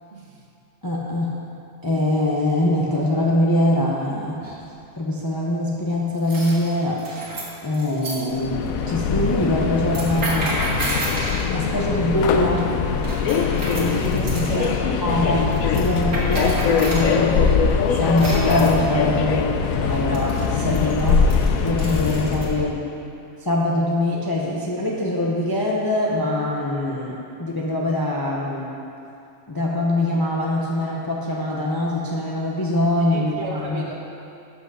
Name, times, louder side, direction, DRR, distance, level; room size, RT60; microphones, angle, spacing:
voice 1, 0.1-0.5 14.4-14.9 22.6-22.7 33.1-34.0, right 1 dB, 50° right, -2 dB, 1.3 m, -34 dB
voice 2, 0.8-1.3 1.8-4.4 5.0-7.2 7.6-10.5 11.5-12.7 13.4-14.7 15.0-15.4 15.7-17.4 17.9-21.2 21.6-22.8 23.4-28.7 29.5-33.8, left 1 dB, 20° left, -3 dB, 0.6 m, -23 dB
sound 1, 4.4-4.8 6.1-8.2 9.8-11.5 13.0-14.7 15.5-17.1 18.0-18.8 20.1-22.5, right 1 dB, 85° right, 2.2 m, -31 dB
Subway metro underground, 8.3-22.7, left 6 dB, 80° left, 1.0 m, -22 dB
8.0 x 5.9 x 6.2 m, 2.6 s
omnidirectional pair, 1.5 m